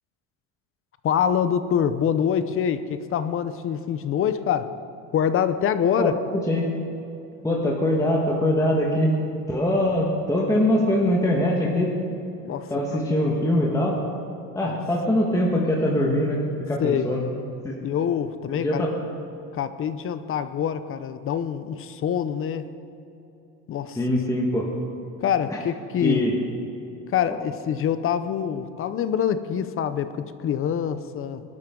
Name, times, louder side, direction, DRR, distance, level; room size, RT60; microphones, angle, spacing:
voice 1, 1.0-4.7 5.1-6.1 12.4-12.7 14.6-14.8 16.8-17.1 17.8-18.8 19.5-22.7 23.7-24.0 25.2-26.3 27.1-31.4, left 8 dB, 35° left, 12 dB, 0.7 m, -25 dB
voice 2, 7.4-9.2 9.5-11.9 12.7-14.0 14.5-17.2 17.6-17.8 18.5-19.0 24.0-24.7 25.5-25.6 26.0-26.4, left 1 dB, 10° left, -2 dB, 1.5 m, -23 dB
21.5 x 12.0 x 3.8 m, 2.9 s
cardioid pair, 135°, 39 cm